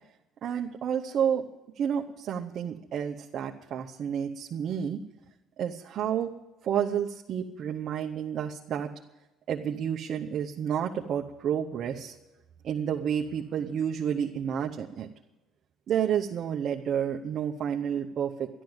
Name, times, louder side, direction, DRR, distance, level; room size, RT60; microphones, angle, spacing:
voice 1, 0.4-1.4 1.8-5.0 5.6-6.3 6.6-8.9 9.5-12.2 12.6-15.1 15.9-18.5, right 8 dB, 50° right, 1 dB, 0.8 m, -30 dB
12.5 x 12.0 x 8.0 m, 1.0 s
cardioid pair, 125°, 0 cm